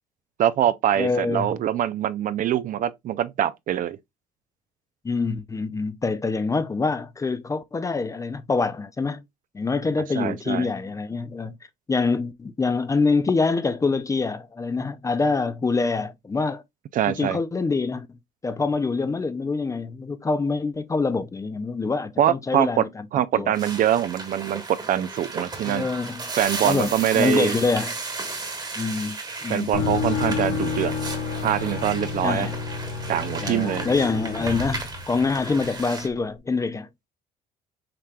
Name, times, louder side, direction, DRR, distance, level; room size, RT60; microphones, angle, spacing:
voice 1, 0.4-4.0 10.1-10.7 16.9-17.4 22.2-22.8 23.1-24.6 24.9-25.9 26.4-27.5 29.5-30.9 31.4-32.5 33.1-33.9, right 11 dB, 55° right, 0.4 m, -24 dB
voice 2, 1.0-1.5 5.0-9.2 9.5-11.5 11.9-16.6 17.1-18.1 18.4-23.1 23.4-23.5 25.6-26.2 26.6-28.0 28.8-29.8 32.2-32.6 33.4-36.9, left 4 dB, 20° left, 0.5 m, -25 dB
sound 1, 23.5-36.1, right 3 dB, 25° right, 1.3 m, -35 dB
sound 2, 29.7-35.6, left 5 dB, 70° left, 2.1 m, -29 dB
5.8 x 3.3 x 2.3 m
cardioid pair, 110°, 17 cm